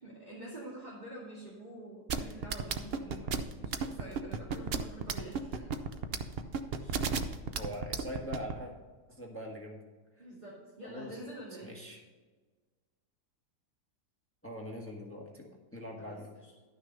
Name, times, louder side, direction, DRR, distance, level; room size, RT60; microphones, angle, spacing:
voice 1, 0.0-5.7 6.7-7.1 10.2-11.7 16.0-16.5, right 1 dB, 25° right, -6 dB, 2.4 m, -47 dB
sound 1, 2.1-8.5, right 6 dB, 55° right, 0.6 m, -32 dB
voice 2, 7.5-8.7 9.1-9.8 10.2-10.3 10.8-11.2 11.6-12.0 14.4-16.3, equal, 10° left, -1 dB, 1.4 m, -42 dB
12.0 x 6.3 x 5.2 m, 1.3 s
omnidirectional pair, 1.8 m